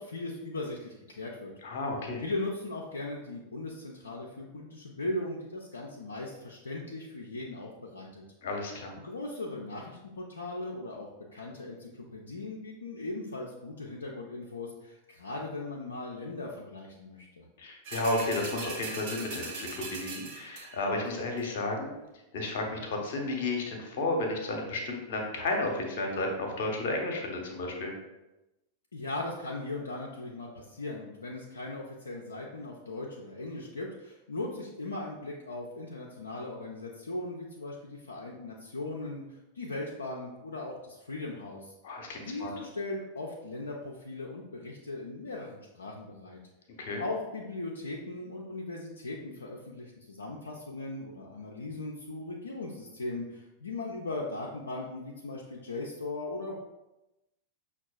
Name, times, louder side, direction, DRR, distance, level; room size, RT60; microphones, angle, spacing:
voice 1, 0.0-1.5 2.2-8.2 8.9-17.5 28.9-41.7 42.2-46.4 47.0-56.5, left 2 dB, 75° left, -2 dB, 0.4 m, -38 dB
voice 2, 1.6-2.2 8.4-9.0 17.6-21.9 22.3-27.9 41.8-42.5 46.8-47.0, left 2 dB, 55° left, 2 dB, 0.8 m, -32 dB
sound 1, 17.8-20.9 21.4-21.5, right 4 dB, 50° right, 0.7 m, -40 dB
5.9 x 2.3 x 2.3 m, 0.98 s
figure-of-eight pair, 90°, 0 cm